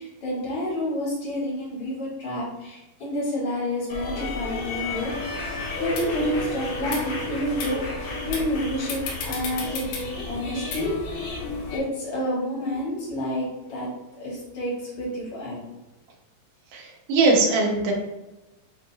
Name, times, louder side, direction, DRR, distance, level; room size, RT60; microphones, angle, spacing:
voice 1, 0.0-5.1 5.4-11.0 11.7-13.9 14.2-15.6, left 1 dB, 50° left, -6 dB, 1.7 m, -29 dB
sound 1, 3.9-11.8, left 2 dB, 70° left, 2.3 m, -32 dB
sound 2, 6.0-6.1 6.8-7.0 7.6-7.7 8.3-8.5 8.9-10.0 10.7-10.8, left 5 dB, 85° left, 2.6 m, -33 dB
voice 2, 16.7-17.9, right 3 dB, 75° right, -2 dB, 2.8 m, -21 dB
7.1 x 2.6 x 2.8 m, 1.0 s
omnidirectional pair, 4.4 m